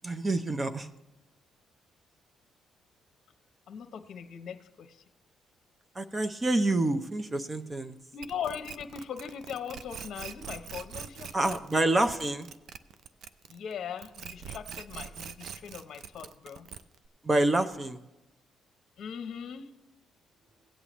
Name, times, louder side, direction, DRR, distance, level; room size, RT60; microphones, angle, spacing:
voice 1, 0.0-0.9 6.0-8.0 11.3-12.5 17.2-18.0, right 2 dB, 25° right, 9 dB, 0.8 m, -27 dB
voice 2, 3.7-5.0 8.1-11.6 13.5-16.7 19.0-19.7, left 7 dB, 65° left, 8 dB, 0.7 m, -40 dB
sound 1, 8.2-13.7 14.0-17.1, right 7 dB, 65° right, 0.5 m, -43 dB
16.5 x 8.3 x 3.1 m, 0.99 s
cardioid pair, 90°, 0 cm